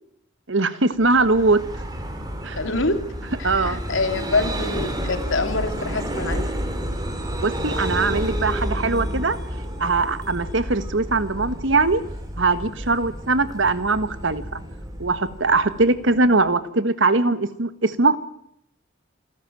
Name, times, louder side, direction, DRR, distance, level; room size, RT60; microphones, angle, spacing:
voice 1, 0.5-1.6 2.4-2.6 3.4-3.8 7.4-9.4 9.8-12.0 12.4-14.6 15.0-18.2, right 3 dB, 65° right, 13 dB, 1.5 m, -21 dB
Vehicle, 1.0-16.5, equal, 20° right, 2.9 m, -30 dB
voice 2, 2.6-3.1 3.4-6.4, left 3 dB, 70° left, 8 dB, 2.6 m, -25 dB
27.0 x 13.0 x 9.1 m, 0.75 s
head